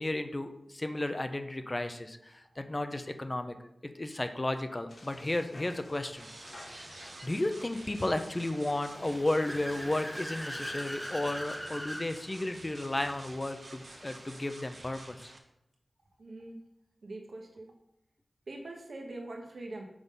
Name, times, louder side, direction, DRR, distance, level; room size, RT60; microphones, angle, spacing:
voice 1, 0.0-3.6 3.9-6.3 6.7-6.9 7.2-15.3, left 1 dB, 25° left, 8 dB, 0.5 m, -33 dB
sound 1, 4.9-14.5, left 1 dB, 65° left, 1.3 m, -54 dB
sound 2, 6.1-15.4, right 2 dB, 60° right, 0.8 m, -50 dB
Car / Accelerating revving vroom, 8.8-12.1, equal, ahead, 1.0 m, -40 dB
voice 2, 16.2-16.6 17.0-17.7 18.5-19.8, right 2 dB, 75° right, 1 dB, 1.2 m, -43 dB
5.9 x 3.9 x 5.2 m, 0.81 s
wide cardioid pair, 95°, 0 cm